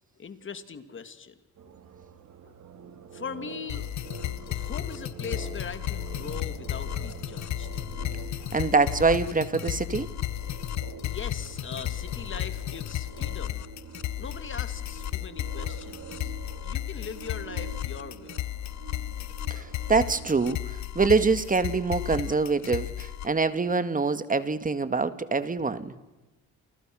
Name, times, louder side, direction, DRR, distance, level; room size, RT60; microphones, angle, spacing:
voice 1, 0.0-1.4 1.6-1.7 2.4-2.6 3.1-3.9 4.4-7.7 8.4-8.5 10.5-10.6 11.0-13.7 14.1-16.3 16.6-18.4, left 6 dB, 40° left, 10 dB, 2.8 m, -41 dB
sound 1, 1.6-20.4, right 6 dB, 70° right, 3.4 m, -45 dB
sound 2, 3.7-23.3, left 13 dB, 65° left, 1.0 m, -34 dB
voice 2, 8.5-10.1 19.5-25.9, right 4 dB, 25° right, 12 dB, 2.0 m, -25 dB
29.0 x 29.0 x 6.4 m, 1.1 s
cardioid pair, 90°, 30 cm